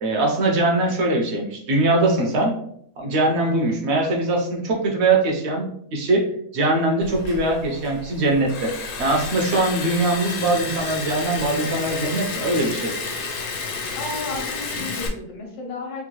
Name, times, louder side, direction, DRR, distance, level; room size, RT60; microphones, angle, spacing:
voice 1, 0.0-2.5 3.0-6.2 6.5-8.7 9.0-12.9, right 2 dB, 60° right, 0 dB, 0.8 m, -21 dB
Liquid, 7.0-15.1, left 4 dB, 65° left, 0.7 m, -31 dB
voice 2, 14.0-16.1, left 3 dB, 80° left, 1 dB, 1.4 m, -33 dB
3.6 x 2.2 x 2.9 m, 0.69 s
omnidirectional pair, 1.6 m